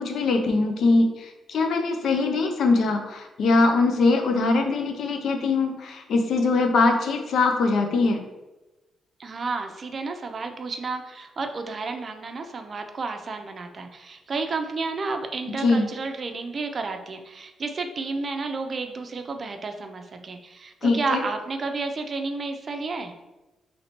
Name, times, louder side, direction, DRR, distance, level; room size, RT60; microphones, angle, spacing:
voice 1, 0.0-8.2 15.5-15.9 20.8-21.2, left 3 dB, 75° left, 4 dB, 0.6 m, -22 dB
voice 2, 9.2-23.1, right 3 dB, 45° right, 6 dB, 0.5 m, -31 dB
3.2 x 2.8 x 4.3 m, 1.1 s
cardioid pair, 85°, 0 cm